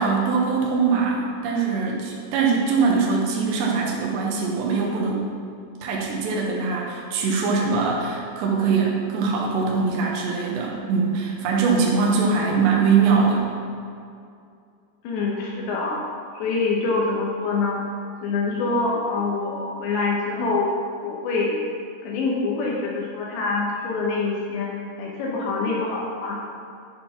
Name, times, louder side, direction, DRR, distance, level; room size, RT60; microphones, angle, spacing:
voice 1, 0.0-5.3 5.8-13.4, right 5 dB, 75° right, -2 dB, 3.3 m, -22 dB
voice 2, 15.0-16.0 16.3-17.8 18.2-20.7 21.0-21.6 22.0-26.4, left 3 dB, 80° left, -3 dB, 3.3 m, -25 dB
11.5 x 4.3 x 5.8 m, 2.4 s
omnidirectional pair, 5.1 m